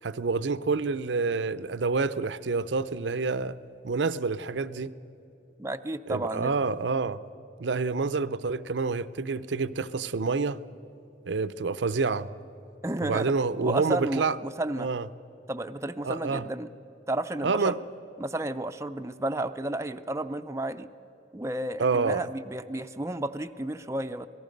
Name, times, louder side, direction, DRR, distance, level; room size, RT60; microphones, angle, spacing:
voice 1, 0.0-3.6 3.8-4.9 6.1-7.2 7.6-10.6 11.2-12.3 13.0-14.4 14.8-15.1 16.0-16.5 17.4-17.8 21.8-22.3, right 4 dB, 80° right, 0.6 m, -28 dB
voice 2, 5.6-6.6 12.8-13.3 13.6-14.9 15.5-16.7 17.1-17.8 18.2-20.9 21.3-24.3, right 1 dB, 15° right, 0.5 m, -32 dB
27.0 x 18.5 x 5.3 m
head